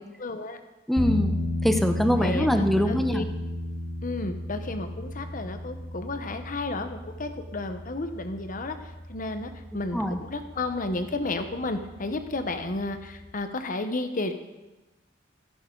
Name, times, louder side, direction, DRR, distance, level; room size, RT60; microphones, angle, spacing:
voice 1, 0.2-0.6 2.2-2.5 2.9-3.2 4.0-8.8 9.1-14.3, left 2 dB, 45° left, 8 dB, 1.0 m, -32 dB
voice 2, 0.9-3.3 9.9-10.2, equal, ahead, 6 dB, 0.8 m, -24 dB
sound 1, 1.0-13.3, left 1 dB, 25° left, 2.8 m, -34 dB
14.0 x 12.0 x 3.9 m, 1.1 s
head